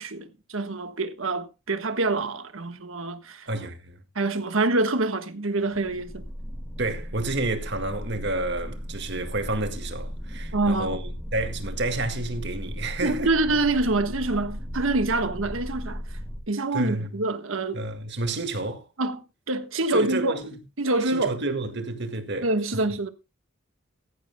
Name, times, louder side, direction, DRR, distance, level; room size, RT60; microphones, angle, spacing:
voice 1, 0.0-3.5 4.1-6.2 10.5-11.0 13.0-16.0 16.5-17.9 19.0-19.2 19.5-20.3 20.8-21.4 22.4-23.1, right 2 dB, 75° right, 1.4 m, -26 dB
voice 2, 3.5-4.0 6.8-13.3 16.7-17.1 17.7-18.9 19.9-20.6 21.1-22.5, right 2 dB, 55° right, 1.9 m, -30 dB
sound 1, 5.6-16.4, equal, 10° right, 2.8 m, -36 dB
16.0 x 15.0 x 2.2 m
head